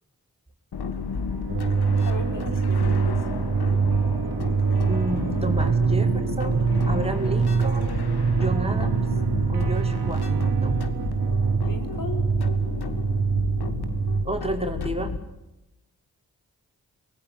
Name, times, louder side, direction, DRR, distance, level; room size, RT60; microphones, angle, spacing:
sound 1, 0.7-15.2, left 5 dB, 85° left, 1.9 m, -32 dB
sound 2, 1.0-14.4, right 9 dB, 65° right, 1.0 m, -35 dB
sound 3, 1.5-14.3, right 5 dB, 35° right, 0.9 m, -24 dB
voice 1, 2.0-3.2 11.6-12.3, left 3 dB, 60° left, 6 dB, 4.2 m, -37 dB
voice 2, 4.9-6.6 6.9-7.9 8.3-9.0 9.5-10.8 14.2-15.1, right 2 dB, 15° right, 4 dB, 5.1 m, -31 dB
23.5 x 19.5 x 9.6 m, 0.94 s
cardioid pair, 45°, 38 cm